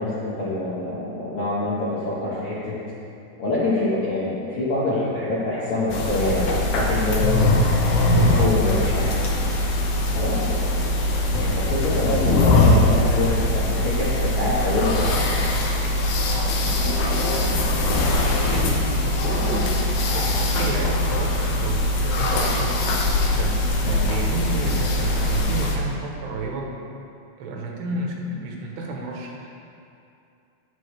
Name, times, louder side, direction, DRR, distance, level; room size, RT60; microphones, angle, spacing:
voice 1, 0.0-2.8 3.4-7.4 7.7-9.2 10.1-10.9 11.4-15.5, left 2 dB, 60° left, -10 dB, 1.4 m, -26 dB
sound 1, 5.9-25.8, left 1 dB, 85° left, 1.6 m, -21 dB
voice 2, 17.5-18.0 18.4-19.7 20.1-22.8 23.3-26.7 27.4-29.5, right 2 dB, 80° right, -1 dB, 3.2 m, -31 dB
11.0 x 9.4 x 3.3 m, 2.6 s
omnidirectional pair, 4.8 m